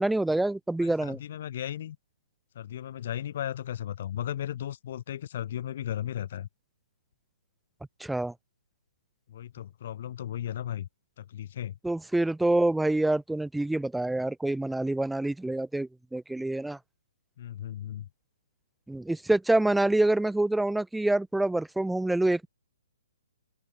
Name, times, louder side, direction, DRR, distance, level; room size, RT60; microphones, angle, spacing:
voice 1, 0.0-1.2 8.0-8.3 11.8-16.8 18.9-22.5, right 2 dB, ahead, 0.4 m, -26 dB
voice 2, 0.8-2.0 2.6-6.5 9.3-10.9 11.2-11.8 17.4-18.1, left 11 dB, 35° left, 5.4 m, -35 dB
open air
hypercardioid pair, 180°, 0 cm